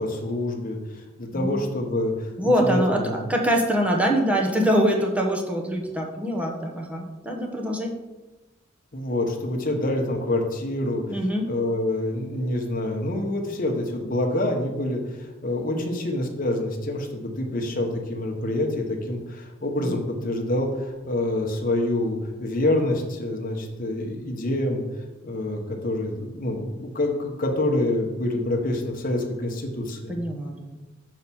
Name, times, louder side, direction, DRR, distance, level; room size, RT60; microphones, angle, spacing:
voice 1, 0.0-2.3 2.6-3.3 8.9-11.0 11.5-24.8 25.2-30.1, left 1 dB, 45° left, 2 dB, 1.1 m, -27 dB
voice 2, 2.4-3.0 3.3-7.9 11.1-11.5 15.7-16.0 19.8-19.9 30.1-30.8, equal, 5° right, 0 dB, 1.0 m, -24 dB
5.6 x 4.7 x 6.2 m, 1.1 s
head